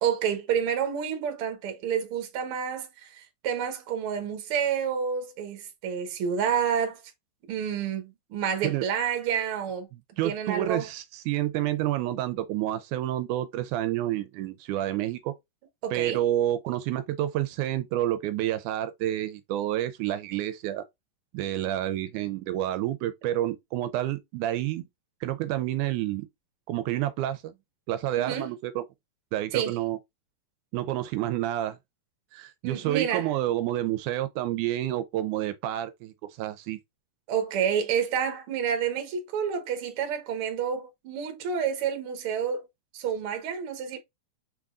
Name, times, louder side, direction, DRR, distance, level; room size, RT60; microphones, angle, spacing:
voice 1, 0.0-7.0 7.5-9.9 10.2-10.9 15.8-16.2 28.2-28.5 29.5-29.8 32.6-33.3 37.3-42.7 42.9-44.0, right 8 dB, 60° right, 1.7 m, -29 dB
voice 2, 10.2-15.4 15.9-20.8 21.3-24.9 25.2-26.3 26.7-27.5 27.9-28.8 29.3-30.0 30.7-31.8 32.3-36.8, right 13 dB, 85° right, 2.0 m, -29 dB
5.6 x 3.5 x 2.4 m
omnidirectional pair, 3.5 m